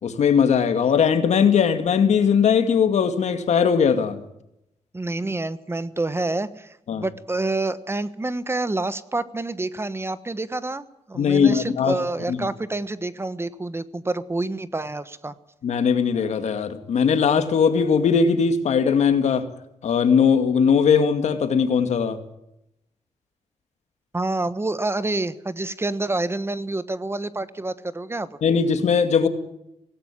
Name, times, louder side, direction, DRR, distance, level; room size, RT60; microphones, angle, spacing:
voice 1, 0.0-4.2 6.9-7.0 11.2-11.9 12.3-12.5 15.6-19.5 19.8-22.2 28.4-29.3, left 6 dB, 75° left, 2.3 m, -19 dB
voice 2, 4.9-15.3 24.1-28.3, right 2 dB, 20° right, 1.2 m, -28 dB
18.0 x 17.0 x 9.9 m
cardioid pair, 90°, 12 cm